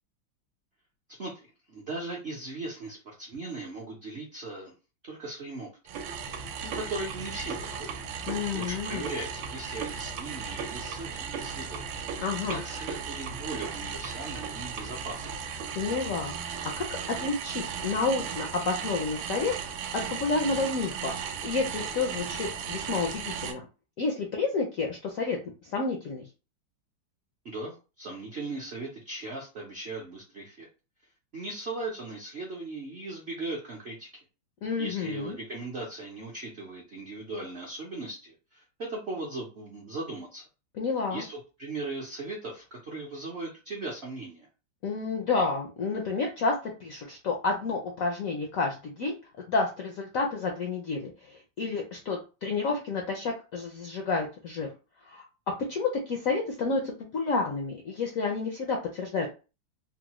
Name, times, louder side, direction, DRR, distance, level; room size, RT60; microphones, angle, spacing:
voice 1, 1.2-4.7 5.0-5.7 6.6-7.9 8.5-11.9 12.5-15.2 27.4-30.7 31.3-34.1 34.8-40.4 41.1-44.5, right 2 dB, 65° right, -3 dB, 0.6 m, -38 dB
sound 1, 5.9-23.5, right 7 dB, 80° right, 1.3 m, -36 dB
voice 2, 8.3-9.1 12.2-12.6 15.7-19.5 19.9-23.6 24.0-26.3 34.6-35.4 40.8-41.2 44.8-49.1 49.5-54.7 55.1-55.2 55.7-59.3, left 4 dB, 75° left, 1 dB, 0.7 m, -30 dB
3.6 x 2.0 x 3.0 m, 0.32 s
omnidirectional pair, 2.1 m